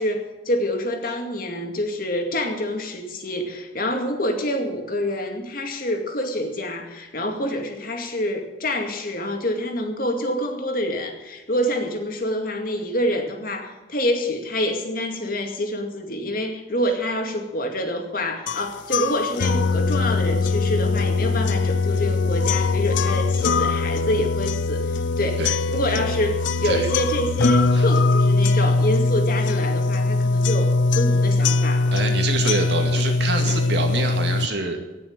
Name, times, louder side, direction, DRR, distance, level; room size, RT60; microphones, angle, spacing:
voice 1, 0.0-31.9, equal, 50° left, 4 dB, 2.3 m, -26 dB
sound 1, 18.5-34.5, left 3 dB, 80° left, 0.5 m, -21 dB
voice 2, 31.9-34.8, right 3 dB, 65° right, 3 dB, 2.2 m, -26 dB
17.5 x 6.4 x 9.4 m, 1.1 s
head